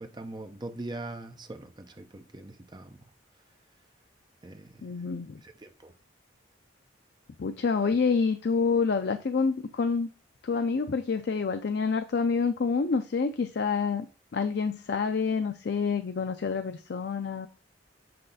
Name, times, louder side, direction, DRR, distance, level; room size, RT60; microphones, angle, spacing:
voice 1, 0.0-3.1 4.4-4.9 5.4-5.9, right 2 dB, 20° right, 0.6 m, -42 dB
voice 2, 4.8-5.4 7.4-10.1 10.4-14.1 14.3-17.5, left 5 dB, 55° left, 0.4 m, -27 dB
7.8 x 3.3 x 4.0 m
head